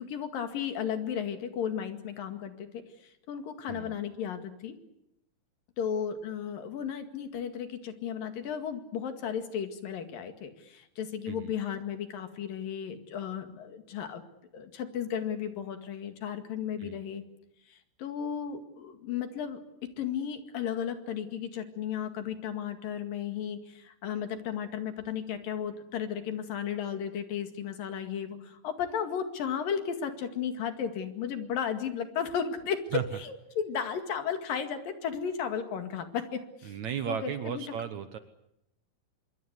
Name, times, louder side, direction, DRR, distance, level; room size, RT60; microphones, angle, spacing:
voice 1, 0.0-2.7 3.0-4.8 5.8-14.2 14.5-17.2 17.7-36.8 37.1-37.6, left 8 dB, 65° left, 8 dB, 3.7 m, -34 dB
voice 2, 36.7-38.2, right 9 dB, 65° right, 10 dB, 2.0 m, -35 dB
25.5 x 23.0 x 8.2 m, 0.80 s
omnidirectional pair, 4.4 m